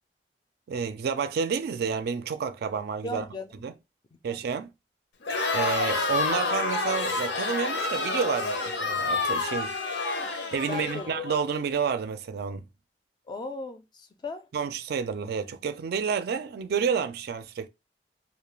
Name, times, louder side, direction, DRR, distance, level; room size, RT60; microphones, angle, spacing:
voice 1, 0.7-3.2 3.6-3.7 4.2-4.7 5.5-9.7 10.5-12.6 14.5-17.7, right 6 dB, 60° right, 0.3 m, -30 dB
voice 2, 3.0-3.6 4.3-4.4 10.7-11.1 13.3-14.5, left 2 dB, 25° left, 0.4 m, -37 dB
Crowd, 5.2-11.4, left 3 dB, 85° left, 0.6 m, -28 dB
2.2 x 2.1 x 3.0 m
head